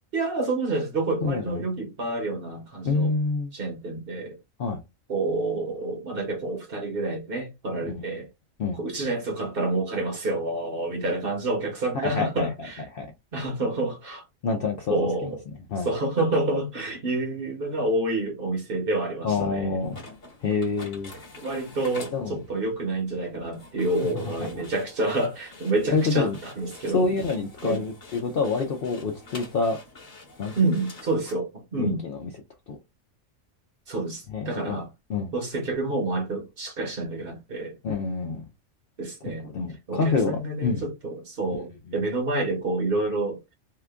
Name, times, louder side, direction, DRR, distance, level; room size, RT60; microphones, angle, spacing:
voice 1, 0.1-3.1 3.5-4.4 5.1-8.3 8.7-12.8 13.3-14.2 14.9-15.4 15.8-19.8 21.4-27.0 27.6-27.8 30.6-32.0 33.9-34.9 35.3-37.8 39.0-39.5 39.9-43.5, right 2 dB, 50° right, 1.0 m, -28 dB
voice 2, 1.2-1.6 2.8-3.5 4.6-4.8 7.8-8.1 8.6-8.8 11.9-12.5 12.9-13.1 14.4-15.1 15.7-15.9 19.2-20.0 20.4-21.1 22.1-22.4 25.9-26.4 26.9-29.8 30.4-30.5 31.8-32.3 32.7-32.8 34.3-34.8 35.1-35.3 37.8-38.4 39.4-40.3 40.6-40.8, left 4 dB, 60° left, 0.6 m, -27 dB
sound 1, 19.8-31.3, left 2 dB, 40° left, 1.1 m, -46 dB
2.9 x 2.3 x 3.4 m
omnidirectional pair, 1.4 m